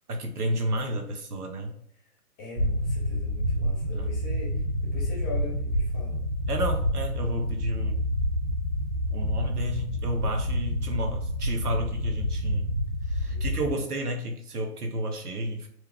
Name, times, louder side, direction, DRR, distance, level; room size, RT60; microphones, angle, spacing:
voice 1, 0.1-1.7 3.9-4.1 6.5-7.9 9.1-12.7 13.1-15.7, right 1 dB, 75° right, 4 dB, 1.1 m, -31 dB
voice 2, 2.4-6.2 13.2-13.8, left 3 dB, 10° left, -4 dB, 0.6 m, -41 dB
sound 1, 2.6-13.7, left 1 dB, 60° right, 1.4 m, -28 dB
4.5 x 2.3 x 3.3 m, 0.69 s
figure-of-eight pair, 140°, 46 cm